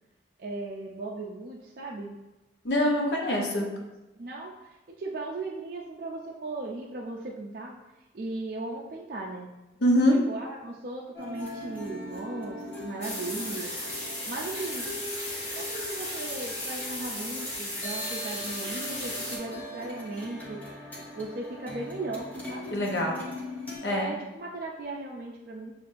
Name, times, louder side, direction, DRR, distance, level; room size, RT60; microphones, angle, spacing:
voice 1, 0.4-2.2 3.2-3.8 4.2-7.8 8.1-9.5 10.3-13.7 14.3-14.9 15.5-20.6 21.2-22.8 23.9-25.7, right 2 dB, 50° right, -2 dB, 0.4 m, -37 dB
voice 2, 2.6-3.7 9.8-10.2 22.7-23.2 23.8-24.1, left 1 dB, 75° left, 0 dB, 0.8 m, -24 dB
sound 1, 11.1-23.8, left 1 dB, 10° left, 0.8 m, -41 dB
sound 2, 13.0-19.4, left 1 dB, 35° left, 1.2 m, -35 dB
7.2 x 2.5 x 2.5 m, 1.0 s
head